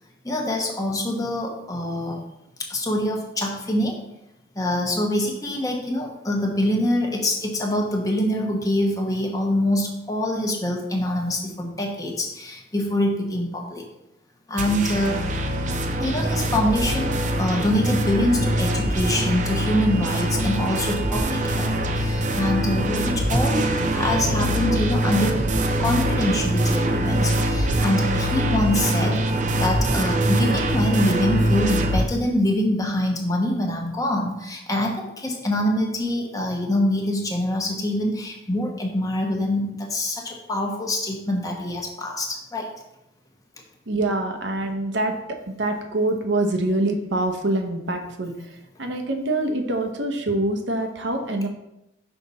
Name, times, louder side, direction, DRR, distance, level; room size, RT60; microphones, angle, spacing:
voice 1, 0.2-2.2 2.6-3.9 4.5-13.8 14.5-15.2 16.0-25.4 25.8-42.7, left 1 dB, 20° left, 0 dB, 1.0 m, -25 dB
sound 1, 14.6-32.0, right 1 dB, 40° right, 0.6 m, -23 dB
voice 2, 43.9-45.2 45.6-48.3 48.8-51.5, right 2 dB, 80° right, 4 dB, 0.9 m, -25 dB
5.8 x 5.3 x 4.1 m, 0.87 s
head